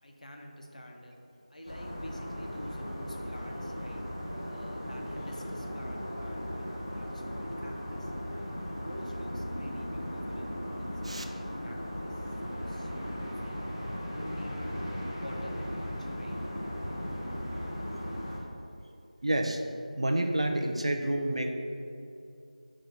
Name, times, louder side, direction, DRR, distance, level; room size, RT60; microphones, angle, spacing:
voice 1, 0.0-1.2 1.5-4.0 4.5-8.1 8.8-13.6 14.1-16.4, equal, 70° left, 1 dB, 1.0 m, -47 dB
sound 1, 1.7-18.4, equal, 25° left, 0.7 m, -37 dB
voice 2, 19.2-19.6 20.0-21.5, right 1 dB, 50° right, 4 dB, 0.5 m, -28 dB
6.0 x 3.0 x 5.5 m, 2.6 s
figure-of-eight pair, 175°, 4 cm